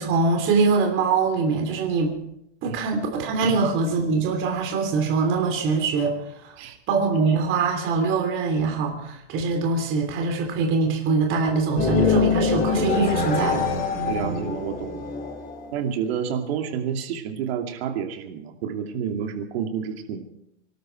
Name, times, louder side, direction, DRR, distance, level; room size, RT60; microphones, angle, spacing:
voice 1, 0.0-2.2 2.6-6.6 6.9-13.7, right 4 dB, 35° right, 2 dB, 3.1 m, -23 dB
sound 1, 11.8-15.7, left 4 dB, 20° left, 2.7 m, -24 dB
voice 2, 14.1-15.2 15.7-20.3, right 8 dB, 55° right, 5 dB, 2.7 m, -29 dB
25.0 x 12.5 x 4.6 m, 0.81 s
supercardioid pair, 145°, 36 cm